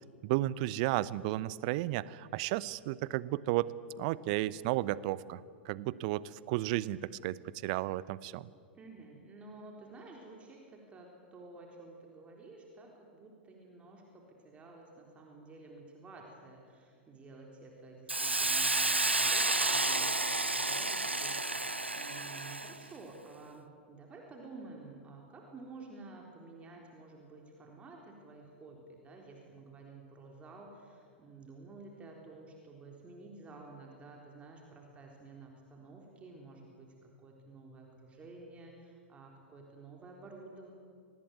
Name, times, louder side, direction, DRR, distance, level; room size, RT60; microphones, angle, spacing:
voice 1, 0.2-8.5, right 16 dB, 45° right, 20 dB, 0.7 m, -33 dB
voice 2, 8.7-40.7, right 3 dB, 20° right, 0 dB, 3.9 m, -52 dB
Hiss, 18.1-22.8, right 2 dB, 85° right, 1.1 m, -31 dB
25.0 x 19.5 x 9.5 m, 2.3 s
figure-of-eight pair, 95°, 6 cm